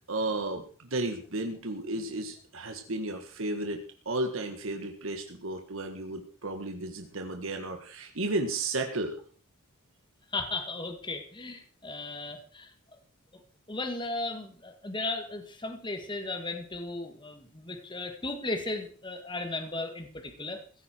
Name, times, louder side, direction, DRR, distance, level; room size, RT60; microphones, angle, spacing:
voice 1, 0.1-3.8 4.0-9.2, right 2 dB, 65° right, 5 dB, 1.7 m, -33 dB
voice 2, 10.3-13.0 13.7-20.6, left 2 dB, 20° left, 6 dB, 2.0 m, -36 dB
16.5 x 13.5 x 4.5 m, 0.42 s
head